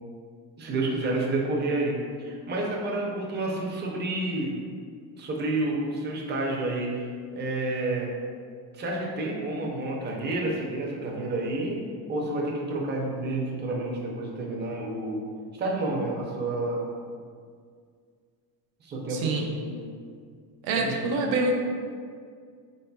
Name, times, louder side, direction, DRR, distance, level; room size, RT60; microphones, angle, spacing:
voice 1, 0.6-4.5 5.2-8.1 8.7-11.8 12.1-15.2 15.6-16.9 18.8-19.9 20.8-21.1, right 2 dB, 25° right, -2 dB, 0.6 m, -29 dB
voice 2, 19.1-19.5 20.6-21.5, right 2 dB, 85° right, 1 dB, 0.7 m, -26 dB
4.1 x 3.7 x 2.3 m, 2.1 s
cardioid pair, 125°, 44 cm